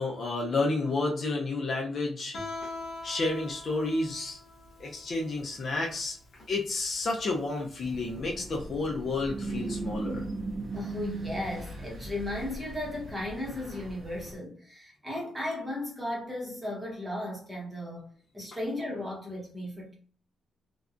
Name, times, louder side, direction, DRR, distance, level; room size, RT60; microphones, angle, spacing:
voice 1, 0.0-2.3 3.0-4.4 4.8-6.2 6.5-10.3, left 3 dB, 40° left, 0.5 m, -30 dB
Guitar, 2.3-8.0, left 2 dB, 85° left, 0.8 m, -43 dB
sound 1, 7.8-14.3, right 2 dB, 40° right, 0.6 m, -38 dB
voice 2, 10.7-19.9, left 1 dB, 10° right, 0.8 m, -36 dB
2.6 x 2.2 x 2.4 m
wide cardioid pair, 180°, 0 cm